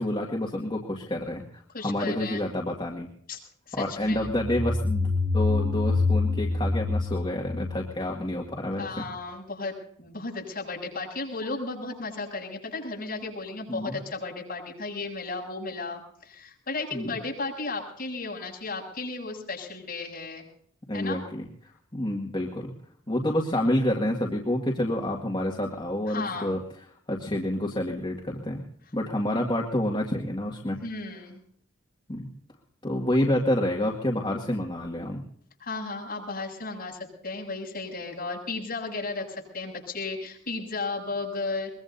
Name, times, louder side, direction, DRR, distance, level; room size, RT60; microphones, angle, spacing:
voice 1, 0.0-3.1 3.7-5.1 5.3-9.0 13.7-14.0 16.9-17.1 20.9-22.7 23.1-26.6 27.1-28.6 28.9-30.8 32.1-32.3 32.8-35.2, left 1 dB, 25° left, -1 dB, 2.0 m, -28 dB
voice 2, 1.7-2.4 3.3-3.4 3.7-4.3 8.8-20.5 20.9-21.2 26.1-26.5 30.8-31.4 35.6-41.7, left 3 dB, 45° left, -1 dB, 7.6 m, -34 dB
sound 1, 4.2-8.7, left 3 dB, 80° right, 3.4 m, -27 dB
23.5 x 22.0 x 2.7 m, 0.64 s
head